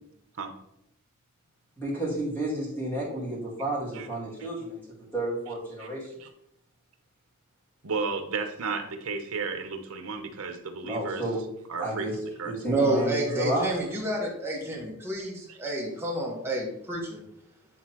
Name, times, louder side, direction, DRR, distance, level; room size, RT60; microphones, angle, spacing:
voice 1, 1.8-4.8 5.1-6.1 10.8-11.4 11.8-12.2 12.4-13.7, right 1 dB, 10° left, -7 dB, 2.6 m, -31 dB
voice 2, 7.8-11.2 11.7-12.1 12.4-12.5 15.5-15.6, right 4 dB, 75° right, 6 dB, 0.9 m, -33 dB
voice 3, 12.6-17.2, right 1 dB, 10° right, -2 dB, 1.4 m, -29 dB
9.4 x 3.7 x 3.0 m, 0.79 s
head